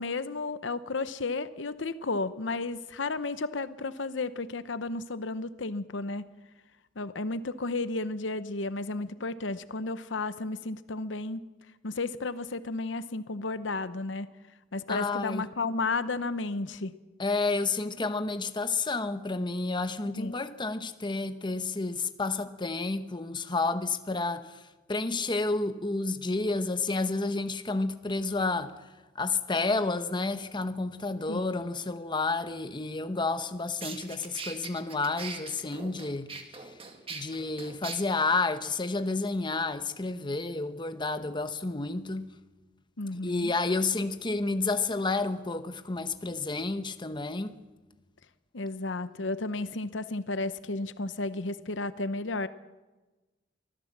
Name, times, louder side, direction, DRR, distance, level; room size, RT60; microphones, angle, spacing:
voice 1, 0.0-6.3 7.0-11.4 11.8-14.3 14.7-16.9 20.2-20.4 31.3-31.7 43.0-43.5 48.5-52.5, left 3 dB, 75° left, 0.9 m, -33 dB
voice 2, 14.9-15.4 17.2-24.5 24.9-28.7 29.1-36.3 37.1-42.3 43.2-47.6, left 3 dB, 25° left, 0.9 m, -30 dB
sound 1, 33.4-33.5 33.8-38.0, right 4 dB, 30° right, 2.0 m, -41 dB
24.5 x 15.0 x 7.4 m
head